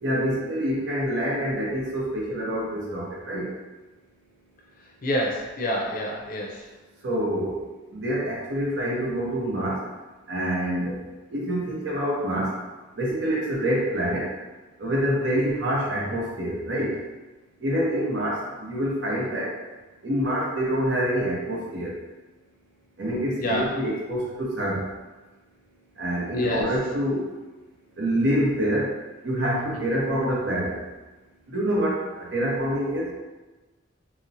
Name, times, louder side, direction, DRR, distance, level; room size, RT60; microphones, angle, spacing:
voice 1, 0.0-3.5 7.0-7.6 7.9-9.8 10.3-12.6 13.0-14.3 14.8-16.9 17.6-19.6 20.0-21.9 23.0-24.8 26.0-27.3 28.0-28.9 29.2-30.8 31.5-33.1, equal, 75° right, -4 dB, 0.7 m, -26 dB
voice 2, 5.0-6.6 23.4-23.7 26.3-26.7 29.7-29.9, equal, 45° left, -1 dB, 0.5 m, -27 dB
2.9 x 2.0 x 2.6 m, 1.2 s
head